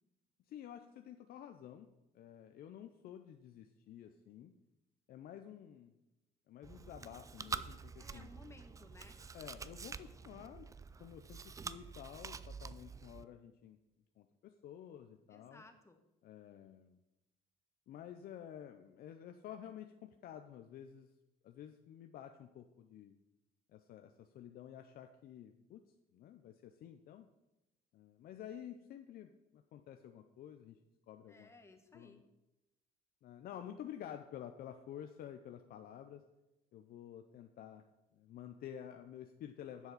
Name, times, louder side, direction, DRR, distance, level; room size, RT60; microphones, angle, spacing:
voice 1, 0.5-1.9 2.1-4.5 5.1-5.9 6.5-8.3 9.3-10.7 11.0-13.8 14.2-15.6 16.2-17.0 17.9-21.1 21.4-23.1 23.7-27.3 27.9-30.8 31.1-31.5 31.9-32.2 33.2-36.2 36.7-37.8 38.1-39.9, left 10 dB, 65° left, 7 dB, 0.6 m, -51 dB
Chewing mastication, 6.6-13.2, right 5 dB, 20° right, 0.3 m, -47 dB
voice 2, 8.0-9.2 15.3-16.0 31.3-32.2, left 2 dB, 15° left, 6 dB, 1.2 m, -59 dB
11.0 x 7.1 x 4.0 m, 0.95 s
cardioid pair, 110°, 17 cm